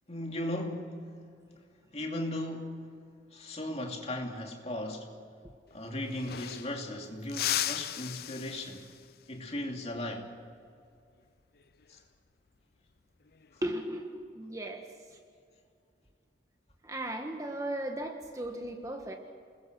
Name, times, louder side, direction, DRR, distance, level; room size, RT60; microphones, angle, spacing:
voice 1, 0.1-1.0 1.9-2.8 3.3-5.1 5.7-8.9 9.3-10.3 11.9-12.0, left 1 dB, 35° left, 2.6 m, -37 dB
sound 1, 5.7-5.8 6.0-6.9 7.3-9.1 11.6-11.8 13.3-13.7, left 12 dB, 55° left, 0.5 m, -36 dB
voice 2, 13.6-15.2 16.8-19.2, right 1 dB, 15° right, 1.5 m, -36 dB
28.5 x 21.0 x 6.2 m
head